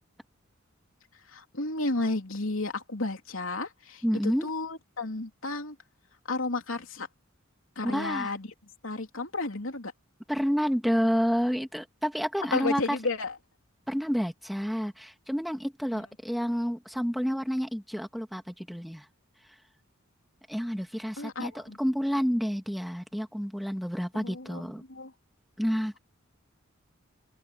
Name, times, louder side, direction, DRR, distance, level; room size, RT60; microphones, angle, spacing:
voice 1, 1.1-5.8 6.3-7.1 7.7-8.5 8.8-9.9 12.5-13.4 15.9-16.1 21.1-21.8 24.1-25.1, left 3 dB, 70° left, 3.3 m, -33 dB
voice 2, 4.0-4.5 7.8-8.3 10.3-12.8 13.9-19.0 20.5-24.8 25.6-26.0, equal, ahead, 2.1 m, -29 dB
open air
head